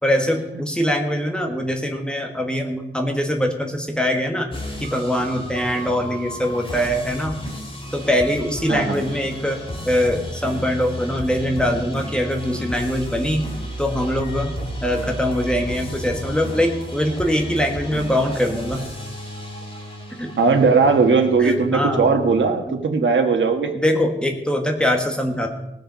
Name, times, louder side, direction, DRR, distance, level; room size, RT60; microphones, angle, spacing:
voice 1, 0.0-4.5 4.8-7.4 7.9-9.6 9.9-13.5 13.8-14.5 14.8-18.9 20.1-20.3 21.4-22.1 22.7-22.8 23.7-25.5, equal, 5° left, 2 dB, 1.4 m, -22 dB
sound 1, 4.5-22.5, equal, 30° left, 2.3 m, -33 dB
voice 2, 8.7-9.0 15.0-15.1 20.4-23.8, right 4 dB, 80° right, 5 dB, 1.6 m, -18 dB
18.5 x 6.7 x 5.6 m, 0.87 s
wide cardioid pair, 170°, 19 cm